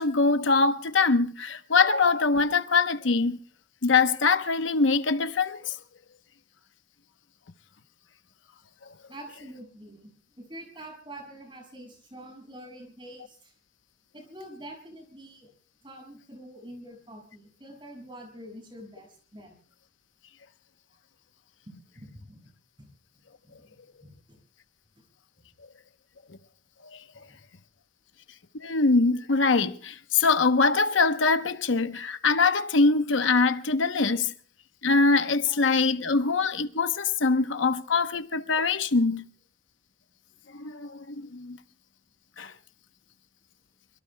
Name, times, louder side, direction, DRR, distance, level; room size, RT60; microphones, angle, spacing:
voice 1, 0.0-3.4 3.8-5.8 26.9-27.0 28.6-34.3 34.8-39.2 40.5-41.6 42.4-42.5, left 4 dB, 85° left, 0.9 m, -23 dB
voice 2, 9.1-10.1 10.4-13.5 14.1-15.5 15.8-19.5 21.9-22.4 22.8-22.9 23.4-24.4 25.0-25.1 27.3-27.4 35.5-35.6 36.1-36.2, right 1 dB, 25° right, 6.2 m, -46 dB
25.0 x 23.0 x 2.2 m
head